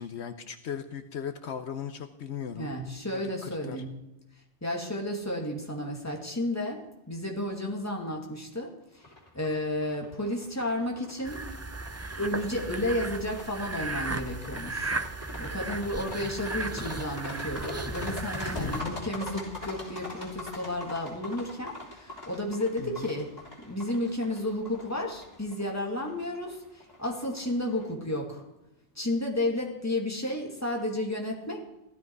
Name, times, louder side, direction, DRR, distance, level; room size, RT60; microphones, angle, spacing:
voice 1, 0.0-2.7 3.1-3.8 18.6-19.0 22.8-23.1, left 8 dB, 75° left, 8 dB, 1.1 m, -37 dB
voice 2, 2.5-3.9 4.6-6.8 7.1-9.1 9.3-11.5 12.2-15.0 15.4-23.3 23.6-28.4 29.0-31.6, left 1 dB, 15° left, 0 dB, 2.4 m, -32 dB
sound 1, 9.0-27.8, left 2 dB, 35° left, 3.5 m, -42 dB
sound 2, 11.2-18.8, right 3 dB, 25° right, 0.3 m, -36 dB
16.0 x 13.5 x 4.7 m, 0.90 s
omnidirectional pair, 1.2 m